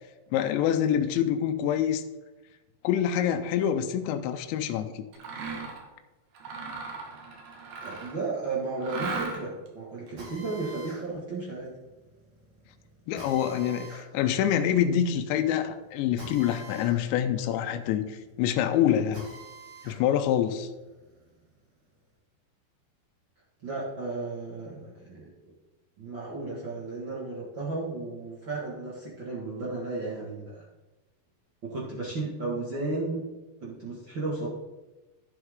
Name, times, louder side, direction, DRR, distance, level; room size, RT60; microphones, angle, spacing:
voice 1, 0.3-2.0 2.8-5.0 13.1-19.2 19.9-20.7, left 10 dB, 85° left, 8 dB, 2.9 m, -26 dB
Mechanisms, 5.1-5.8 6.3-8.3 8.8-9.7, right 4 dB, 65° right, 3.4 m, -36 dB
voice 2, 7.8-11.8 23.6-25.3 26.0-30.6 31.6-33.2 33.6-34.5, right 3 dB, 80° right, -6 dB, 1.0 m, -34 dB
Drill, 10.2-20.0 20.4-22.1, right 3 dB, 40° right, 4.5 m, -48 dB
11.0 x 9.1 x 3.6 m, 1.1 s
omnidirectional pair, 5.1 m